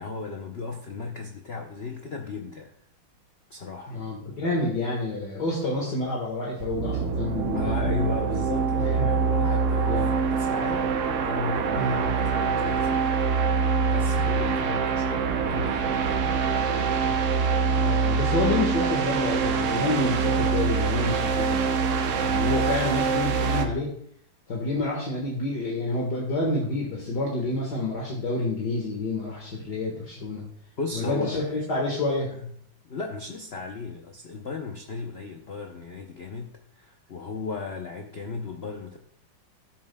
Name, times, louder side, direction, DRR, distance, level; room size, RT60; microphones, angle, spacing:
voice 1, 0.0-2.7 3.5-4.0 7.5-10.9 11.2-13.1 13.5-16.4 30.8-31.7 32.3-32.6 32.8-39.0, left 4 dB, 85° left, 3 dB, 0.5 m, -35 dB
voice 2, 3.9-7.7 9.0-9.5 9.8-10.1 11.8-12.0 14.0-14.4 17.0-17.2 17.7-21.6 22.2-23.9 24.5-30.4 30.9-31.4 31.7-32.3, left 2 dB, 55° left, -2 dB, 2.0 m, -28 dB
sound 1, 6.6-23.7, right 5 dB, 75° right, 0.7 m, -25 dB
13.5 x 7.3 x 2.2 m, 0.64 s
omnidirectional pair, 2.2 m